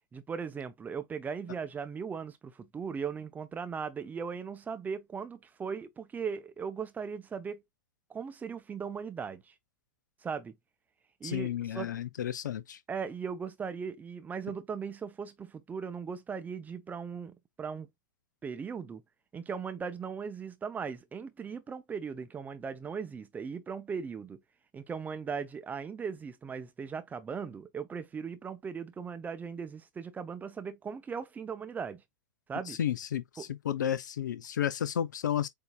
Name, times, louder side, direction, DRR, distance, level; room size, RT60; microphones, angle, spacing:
voice 1, 0.1-7.6 8.1-9.5 10.2-10.5 11.2-11.9 12.9-17.9 18.4-19.0 19.3-24.4 24.7-32.0 32.5-32.8 33.4-33.5, right 6 dB, 15° right, 0.7 m, -38 dB
voice 2, 11.2-12.8 32.7-35.5, left 10 dB, 70° left, 0.5 m, -32 dB
7.9 x 2.8 x 2.3 m
figure-of-eight pair, 100°, 10 cm